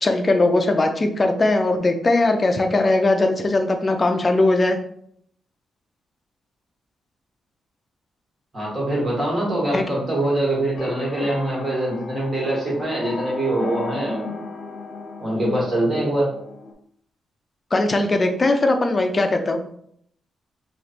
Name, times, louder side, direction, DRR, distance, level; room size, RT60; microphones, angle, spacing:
voice 1, 0.0-4.8 9.7-9.8 17.7-19.6, left 2 dB, 25° left, 5 dB, 0.4 m, -19 dB
voice 2, 8.5-14.4 15.2-16.3, right 1 dB, 30° right, -4 dB, 1.5 m, -23 dB
sound 1, 10.8-16.7, left 3 dB, 60° left, 0.8 m, -35 dB
3.2 x 2.4 x 4.3 m, 0.69 s
cardioid pair, 140°, 0 cm